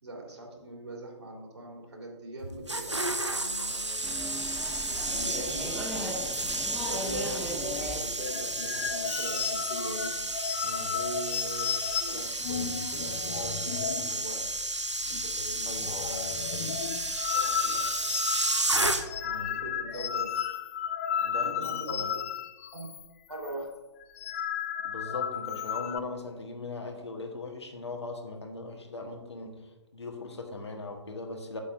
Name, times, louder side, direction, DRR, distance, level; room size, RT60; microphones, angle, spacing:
voice 1, 0.0-4.2 5.1-5.8 6.8-10.2 10.9-11.7 12.1-14.5 15.1-16.7 17.3-17.9 19.3-20.3 21.4-22.2 22.7-22.9 23.3-23.7, right 2 dB, 70° right, -1 dB, 2.5 m, -41 dB
sound 1, 2.4-19.4 19.6-19.9, right 2 dB, 90° right, 0.8 m, -32 dB
sound 2, 4.0-9.2, equal, ahead, 1.0 m, -38 dB
sound 3, 8.2-14.2 14.4-14.6 14.9-15.4 15.7-23.1 23.3-23.5 24.0-26.0, left 9 dB, 30° left, 0.4 m, -34 dB
voice 2, 10.6-11.0 15.6-16.3 19.2-19.5 21.2-22.1 24.8-29.6 29.9-31.6, left 3 dB, 70° left, 2 dB, 1.5 m, -39 dB
8.3 x 8.1 x 2.7 m, 1.1 s
figure-of-eight pair, 130°, 15 cm